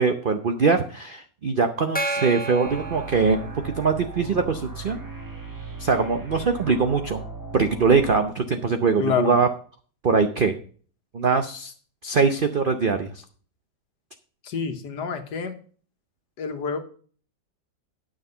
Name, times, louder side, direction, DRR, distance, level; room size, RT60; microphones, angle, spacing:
voice 1, 0.0-5.0 5.8-7.2 7.5-9.5 10.0-10.6 11.1-11.7 12.0-13.1, right 5 dB, 60° right, 7 dB, 0.5 m, -22 dB
Gong, 1.9-4.0, right 2 dB, 10° left, 0.6 m, -31 dB
sound 1, 2.6-8.2, right 4 dB, 15° right, 1.1 m, -37 dB
voice 2, 9.0-9.4 14.4-15.5 16.4-16.8, left 6 dB, 70° left, 7 dB, 1.8 m, -27 dB
9.7 x 6.4 x 5.4 m, 0.43 s
omnidirectional pair, 1.9 m